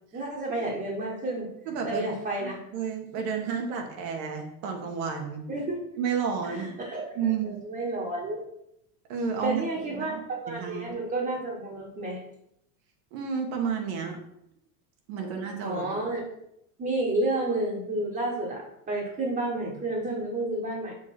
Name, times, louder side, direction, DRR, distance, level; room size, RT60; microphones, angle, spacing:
voice 1, 0.1-1.5 1.8-2.6 3.2-3.3 5.5-5.8 6.4-8.4 9.4-12.2 15.2-15.3 15.6-16.2 16.8-20.9, right 2 dB, 20° right, -5 dB, 1.6 m, -31 dB
voice 2, 1.7-2.1 2.4-5.5 6.0-6.7 7.2-7.6 9.1-9.6 9.9-10.2 10.5-11.0 13.1-14.2 15.1-15.8, right 6 dB, 60° right, 2 dB, 1.8 m, -31 dB
6.2 x 3.7 x 6.1 m, 0.77 s
supercardioid pair, 135°, 45 cm